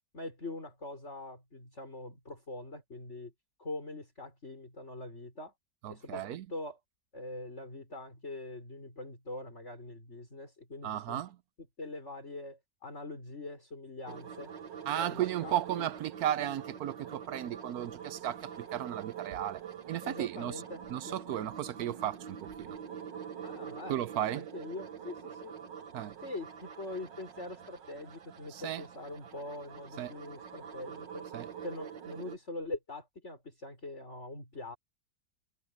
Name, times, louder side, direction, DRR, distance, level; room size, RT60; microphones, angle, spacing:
voice 1, 0.1-3.3 3.6-5.5 5.9-6.8 7.1-11.2 11.8-14.5 15.0-15.9 20.0-21.3 23.4-24.0 24.3-25.6 26.2-31.3 31.6-34.8, left 2 dB, 40° left, 6.0 m, -43 dB
voice 2, 5.8-6.5 10.8-11.4 14.9-19.6 19.9-20.6 20.9-22.8 23.9-24.4 25.9-26.1 28.5-28.8 30.0-30.1 31.3-31.5, right 12 dB, 65° right, 1.1 m, -35 dB
sound 1, 14.1-32.4, right 8 dB, 85° right, 2.0 m, -45 dB
omnidirectional pair, 1.9 m